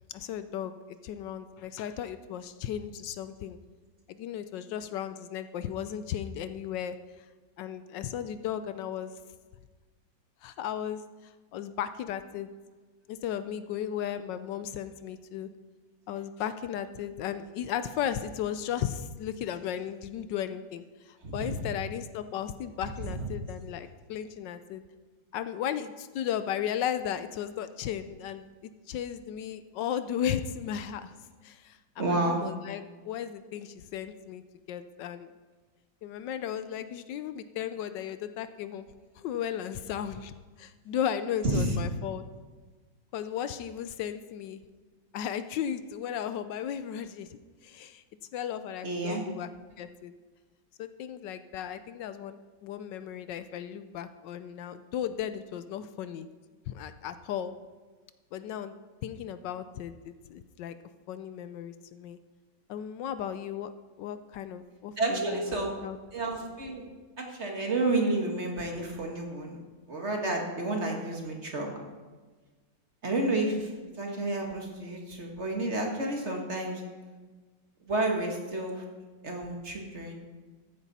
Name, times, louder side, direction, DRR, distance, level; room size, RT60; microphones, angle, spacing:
voice 1, 0.1-0.7 1.0-3.6 4.1-7.3 7.6-9.1 10.4-12.5 13.1-15.5 16.1-24.8 25.3-28.4 28.9-31.2 31.4-31.8 32.1-34.4 34.7-35.3 36.0-42.2 43.1-44.6 45.1-48.0 48.3-49.5 49.8-50.1 50.8-56.3 56.7-57.5 58.3-58.8 59.0-60.8 61.1-62.2 62.7-63.7 64.0-66.0, left 9 dB, 75° left, 12 dB, 1.2 m, -35 dB
voice 2, 21.2-21.6 23.1-23.2 32.0-32.4 41.4-41.8 48.8-49.2 65.0-65.7 66.1-66.9 67.2-69.6 69.9-71.8 73.0-76.8 77.9-78.8 79.2-80.1, right 2 dB, 40° right, 1 dB, 1.8 m, -30 dB
14.0 x 9.8 x 4.2 m, 1.3 s
omnidirectional pair, 2.0 m